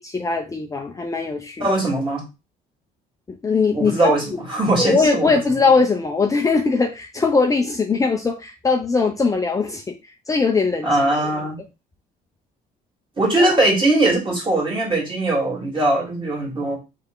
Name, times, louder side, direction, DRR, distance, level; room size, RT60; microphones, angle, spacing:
voice 1, 0.0-1.7 3.3-4.1 4.8-9.9 10.3-10.9 13.4-13.5, left 4 dB, 20° left, 2 dB, 0.6 m, -20 dB
voice 2, 1.6-2.3 3.7-5.3 10.8-11.6 13.2-16.8, right 2 dB, 30° right, -1 dB, 2.2 m, -20 dB
3.5 x 3.3 x 3.8 m, 0.26 s
cardioid pair, 110°, 17 cm